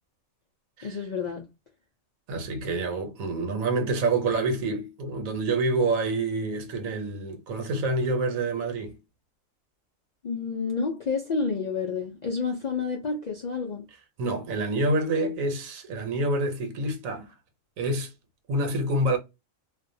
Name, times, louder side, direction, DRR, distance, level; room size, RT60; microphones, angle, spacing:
voice 1, 0.8-1.5 10.2-13.9, left 5 dB, 75° left, 0.4 m, -29 dB
voice 2, 2.3-9.0 14.2-17.3 17.8-18.1 18.5-19.2, right 2 dB, 90° right, 1.2 m, -27 dB
2.5 x 2.1 x 2.6 m
omnidirectional pair, 1.4 m